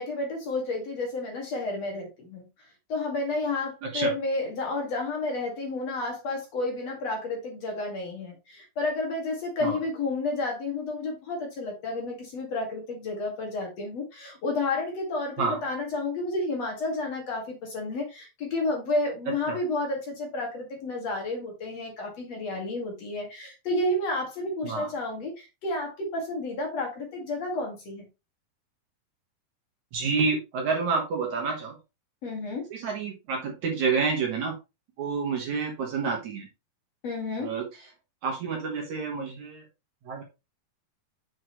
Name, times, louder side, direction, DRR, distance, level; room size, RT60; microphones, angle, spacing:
voice 1, 0.0-2.5 2.9-28.1 32.2-32.6 37.0-37.5, left 2 dB, 50° left, 3.1 m, -31 dB
voice 2, 29.9-31.8 32.7-34.5 35.0-36.5 37.4-37.7 38.2-39.6 40.1-40.2, right 4 dB, 60° right, 2.5 m, -28 dB
7.7 x 5.8 x 3.1 m
omnidirectional pair, 4.3 m